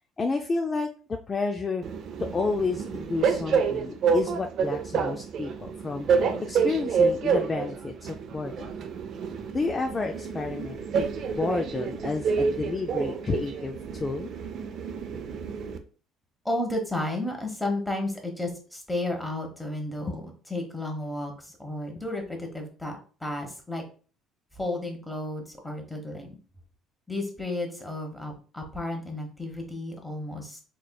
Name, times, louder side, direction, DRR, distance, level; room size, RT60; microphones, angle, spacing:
voice 1, 0.2-1.8 2.2-6.1 6.4-8.7 9.5-14.3 20.0-20.2, left 4 dB, 25° left, 4 dB, 0.3 m, -31 dB
Train, 1.8-15.8, right 5 dB, 55° right, 0.5 m, -28 dB
voice 2, 16.4-23.8 24.5-26.4 27.1-30.6, left 1 dB, 5° left, 2 dB, 1.0 m, -33 dB
4.3 x 3.1 x 2.2 m, 0.39 s
cardioid pair, 115°, 0 cm